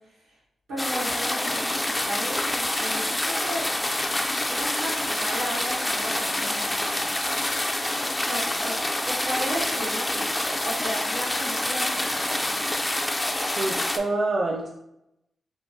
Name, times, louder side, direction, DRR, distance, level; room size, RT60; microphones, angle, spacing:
voice 1, 0.7-3.7 4.1-7.1 8.2-8.8 9.1-12.7, equal, 90° right, -6 dB, 1.1 m, -35 dB
sound 1, 0.8-14.0, left 1 dB, 20° left, 0.4 m, -27 dB
voice 2, 13.5-14.7, right 2 dB, 60° right, -1 dB, 0.4 m, -26 dB
3.5 x 2.7 x 2.6 m, 0.85 s
cardioid pair, 55°, 0 cm